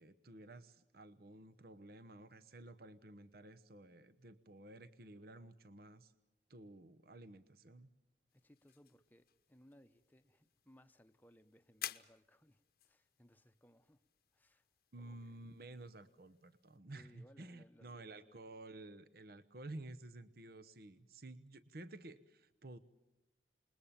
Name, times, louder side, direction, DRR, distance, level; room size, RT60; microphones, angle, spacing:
voice 1, 0.0-6.1 6.5-7.9 14.9-22.8, right 2 dB, 55° right, 0.9 m, -53 dB
sound 1, 8.3-16.8, left 11 dB, 55° left, 0.9 m, -55 dB
voice 2, 8.3-14.0 14.3-14.7 15.0-15.4 16.9-18.4, equal, 10° left, 0.9 m, -66 dB
28.0 x 21.0 x 7.3 m
head